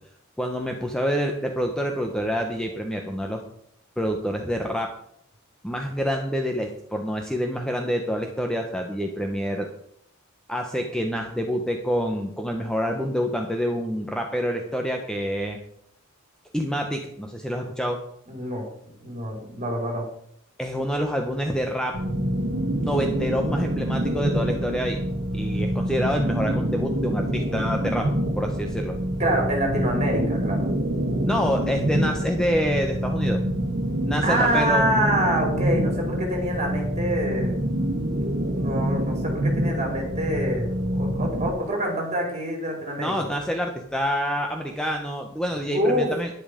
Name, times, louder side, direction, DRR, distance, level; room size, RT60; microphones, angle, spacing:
voice 1, 0.4-3.4 4.0-4.9 5.6-9.7 10.5-15.6 16.5-18.0 20.6-22.0 22.8-25.0 25.3-28.1 28.4-28.9 31.2-33.4 34.1-34.8 43.0-46.3, equal, 5° left, 2 dB, 1.1 m, -27 dB
voice 2, 18.3-18.7 19.0-20.1 29.2-30.7 34.2-37.6 38.5-43.3 45.6-46.1, right 1 dB, 35° right, 0 dB, 4.7 m, -26 dB
sound 1, 21.9-41.5, equal, 55° right, 1.8 m, -26 dB
11.0 x 11.0 x 5.2 m, 0.69 s
head